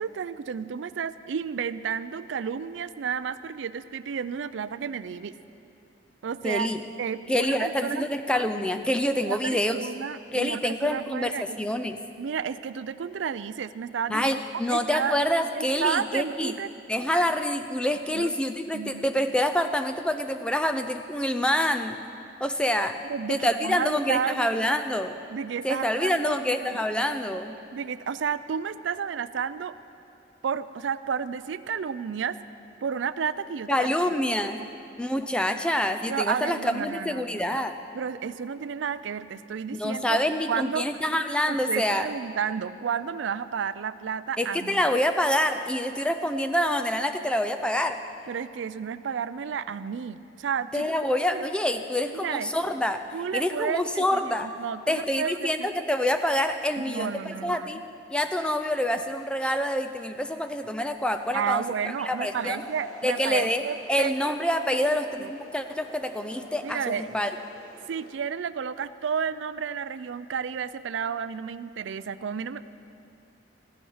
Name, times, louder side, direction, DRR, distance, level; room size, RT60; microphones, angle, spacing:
voice 1, 0.0-5.3 6.2-6.7 7.0-8.1 9.3-11.6 12.2-14.4 14.7-15.2 15.5-16.7 18.1-18.4 18.7-19.1 23.0-24.7 25.3-26.8 27.7-29.7 30.4-32.4 32.8-33.9 36.1-37.6 37.9-40.2 40.5-40.9 41.5-44.8 48.3-50.9 51.3-51.5 52.1-52.5 53.1-55.7 56.8-57.7 61.3-64.3 64.6-65.3 66.6-67.2 67.9-72.7, right 7 dB, 70° right, 14 dB, 0.4 m, -31 dB
voice 2, 6.4-6.8 7.3-9.8 10.3-12.0 14.1-16.5 16.9-22.0 22.4-23.0 23.3-25.2 25.6-27.5 33.7-34.6 35.0-37.7 39.7-42.1 44.4-48.0 50.7-53.0 53.3-54.5 54.9-57.8 58.1-61.6 62.0-62.6 63.0-63.6 63.9-67.3, left 1 dB, 5° left, 7 dB, 0.4 m, -26 dB
sound 1, 61.1-68.1, equal, 20° left, 3.3 m, -47 dB
15.0 x 11.5 x 5.6 m, 2.6 s
head